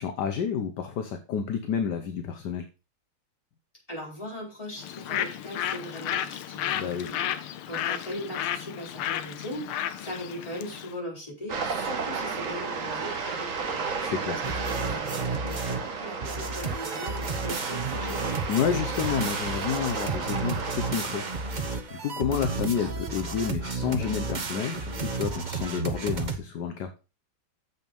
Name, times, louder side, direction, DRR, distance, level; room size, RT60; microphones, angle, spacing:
voice 1, 0.0-2.7 6.7-7.1 14.0-14.4 18.5-26.9, left 7 dB, 60° left, 7 dB, 1.2 m, -30 dB
voice 2, 3.9-7.3 7.7-13.8 14.3-18.3, equal, 15° left, -4 dB, 4.5 m, -39 dB
Bird, 4.8-10.9, left 10 dB, 85° left, 1.6 m, -32 dB
sound 1, 11.5-21.8, right 5 dB, 45° right, 1.3 m, -33 dB
sound 2, 14.4-15.9 16.2-26.4, right 4 dB, 90° right, 0.4 m, -32 dB
7.2 x 6.3 x 5.3 m, 0.32 s
omnidirectional pair, 2.4 m